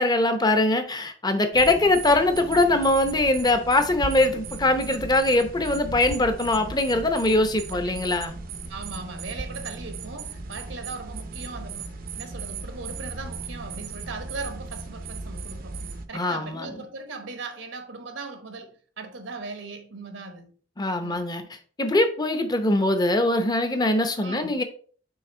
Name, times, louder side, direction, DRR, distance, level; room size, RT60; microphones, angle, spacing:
voice 1, 0.0-8.3 16.1-16.8 20.8-21.4 21.8-24.6, left 2 dB, 20° left, 0.8 m, -22 dB
sound 1, 1.5-16.0, right 4 dB, 50° right, 0.6 m, -37 dB
voice 2, 8.7-15.8 16.1-20.5 21.0-21.3 24.2-24.6, right 3 dB, 80° right, 1.1 m, -38 dB
6.4 x 3.4 x 4.4 m
head